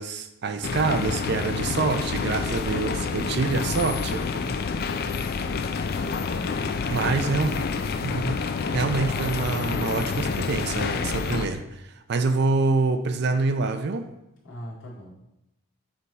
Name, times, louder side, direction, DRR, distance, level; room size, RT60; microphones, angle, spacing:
voice 1, 0.0-4.2 6.9-7.5 8.0-8.4 8.7-14.0, right 3 dB, 50° right, 9 dB, 0.4 m, -26 dB
sound 1, 0.6-11.5, left 4 dB, 45° left, 0.3 m, -28 dB
voice 2, 3.3-3.9 14.4-15.1, equal, 65° left, -6 dB, 1.9 m, -40 dB
6.7 x 3.4 x 4.0 m, 0.89 s
head